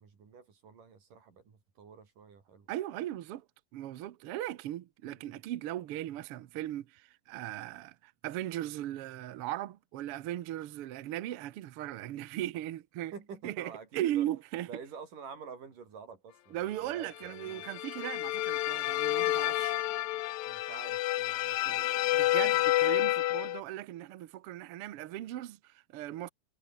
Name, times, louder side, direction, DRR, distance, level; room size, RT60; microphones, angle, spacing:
voice 1, 0.0-2.7 5.1-5.4 13.1-14.3 14.7-17.7 20.5-22.4, right 6 dB, 90° right, 5.9 m, -49 dB
voice 2, 2.7-3.4 3.7-13.1 13.4-14.7 16.5-19.8 21.7-21.9 22.1-26.3, right 13 dB, 65° right, 1.5 m, -38 dB
sound 1, 17.4-23.6, left 16 dB, 75° left, 2.0 m, -29 dB
omnidirectional pair, 3.6 m